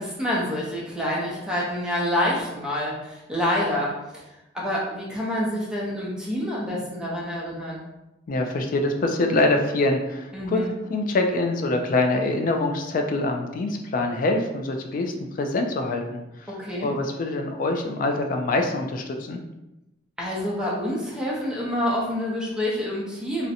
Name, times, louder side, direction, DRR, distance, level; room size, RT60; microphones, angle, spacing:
voice 1, 0.0-3.9 4.5-7.8 10.3-10.7 16.5-16.9 20.2-23.5, left 1 dB, 5° right, -5 dB, 0.6 m, -27 dB
voice 2, 8.3-10.6 10.9-16.5 16.8-19.4, left 2 dB, 45° left, 4 dB, 0.3 m, -25 dB
2.5 x 2.1 x 2.7 m, 0.95 s
head